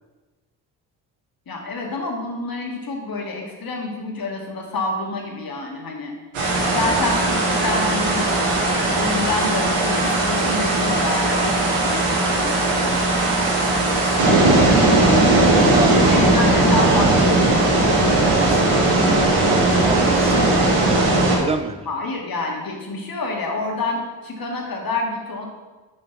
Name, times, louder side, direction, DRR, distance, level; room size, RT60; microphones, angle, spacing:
voice 1, 1.5-6.1 6.7-8.6 8.9-12.6 14.5-14.7 16.1-18.0 21.9-25.5, left 2 dB, 45° left, 0 dB, 2.0 m, -28 dB
sound 1, 6.3-21.4, right 2 dB, 80° right, 1.7 m, -18 dB
voice 2, 15.7-16.2 18.4-20.7 21.2-21.9, right 4 dB, 15° right, 10 dB, 0.5 m, -29 dB
6.8 x 4.3 x 5.8 m, 1.3 s
hypercardioid pair, 45°, 49 cm